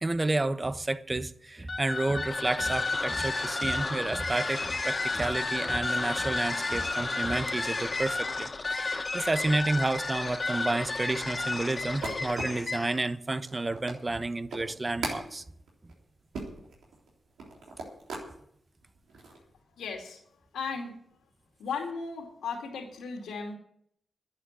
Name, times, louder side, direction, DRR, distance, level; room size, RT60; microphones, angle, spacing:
voice 1, 0.0-15.4, right 2 dB, 30° right, 1.0 m, -30 dB
sound 1, 1.6-13.1, left 3 dB, 45° left, 1.8 m, -32 dB
sound 2, 10.8-18.3 18.8-19.4, right 3 dB, 85° right, 3.6 m, -40 dB
voice 2, 19.6-20.2 20.5-21.0 21.6-23.5, left 5 dB, 85° left, 2.6 m, -36 dB
11.0 x 8.9 x 9.4 m
supercardioid pair, 40°, 0 cm